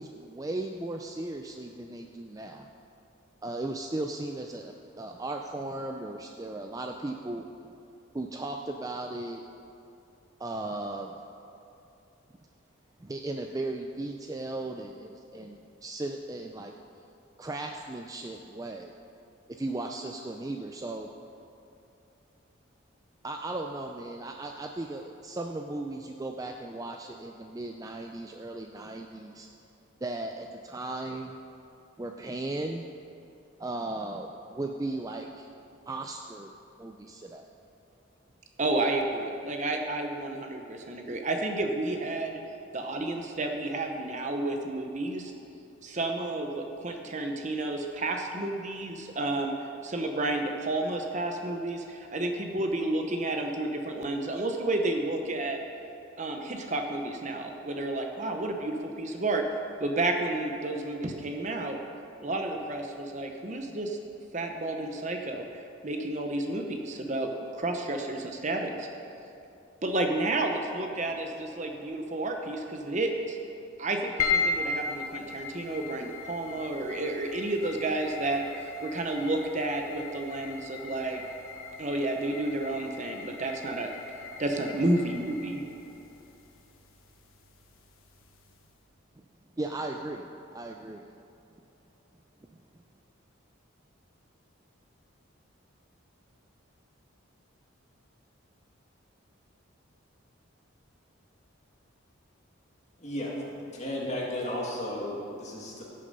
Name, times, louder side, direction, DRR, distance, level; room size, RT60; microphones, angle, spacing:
voice 1, 0.0-2.7 3.4-7.7 8.1-9.4 10.4-11.2 13.0-16.7 17.4-18.9 19.6-21.1 23.2-29.5 30.0-31.4 32.0-32.8 33.6-35.5 35.9-36.5 36.8-37.5 89.2-89.3 89.6-91.0, right 2 dB, 15° right, 3 dB, 0.3 m, -36 dB
voice 2, 38.6-42.4 42.7-45.3 45.8-49.5 49.8-55.6 56.2-59.4 59.8-61.8 62.2-64.0 64.3-68.9 69.8-73.4 73.8-81.2 81.8-83.9 84.4-85.6, right 2 dB, 35° right, 4 dB, 0.8 m, -31 dB
sound 1, 74.2-88.7, left 4 dB, 85° left, 1.1 m, -37 dB
voice 3, 103.0-103.4 103.7-105.8, left 1 dB, 35° left, -3 dB, 2.0 m, -34 dB
16.5 x 6.7 x 5.4 m, 2.8 s
head